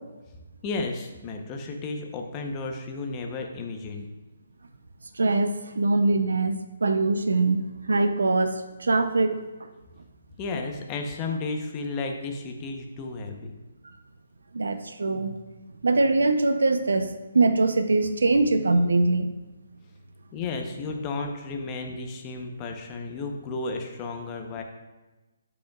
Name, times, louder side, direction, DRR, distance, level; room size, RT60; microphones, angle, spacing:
voice 1, 0.6-4.1 10.4-13.5 20.3-24.6, left 3 dB, 25° left, 3 dB, 0.8 m, -33 dB
voice 2, 5.1-9.7 13.8-13.9 14.5-15.4 15.8-19.3, right 3 dB, 90° right, 8 dB, 0.6 m, -23 dB
11.5 x 5.2 x 2.4 m, 1.1 s
hypercardioid pair, 155°, 0 cm